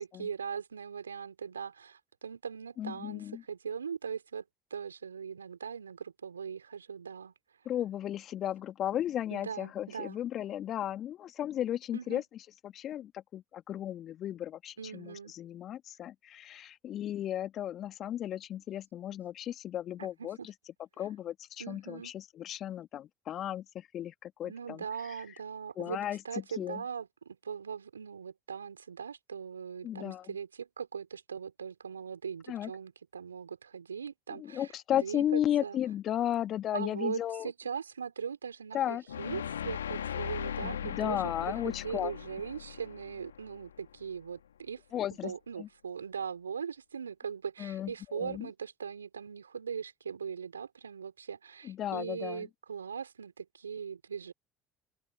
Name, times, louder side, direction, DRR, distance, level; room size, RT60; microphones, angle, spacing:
voice 1, 0.0-4.4 4.7-7.3 9.3-10.2 11.9-12.2 14.8-15.3 20.0-20.5 21.6-22.1 24.4-26.0 26.2-35.8 36.7-44.8 45.2-54.3, right 6 dB, 85° right, 4.1 m, -40 dB
voice 2, 2.8-3.4 7.7-20.5 21.0-25.2 25.8-26.8 29.8-30.3 32.5-32.7 34.3-37.5 38.7-39.0 40.6-42.1 44.9-45.7 47.6-48.5 51.6-52.5, left 11 dB, 50° left, 2.2 m, -35 dB
sound 1, 39.1-44.2, left 9 dB, 80° left, 1.4 m, -39 dB
open air
figure-of-eight pair, 60°, 0 cm